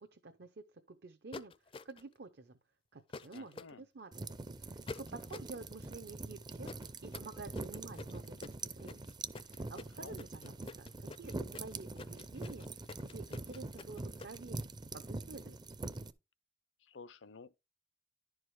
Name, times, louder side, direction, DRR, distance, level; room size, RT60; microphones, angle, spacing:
voice 1, 0.0-1.5 1.8-2.6 2.9-4.4 4.6-9.1 9.4-15.7, right 3 dB, 60° right, 0.7 m, -50 dB
sound 1, 1.3-2.1 3.1-3.7 4.9-5.6 6.6-14.4, left 3 dB, 30° left, 0.4 m, -48 dB
voice 2, 3.3-3.8 10.0-10.2 16.9-17.6, left 4 dB, 75° left, 0.6 m, -52 dB
sound 2, 4.1-16.1, right 2 dB, 25° right, 0.5 m, -44 dB
11.0 x 4.8 x 4.7 m
head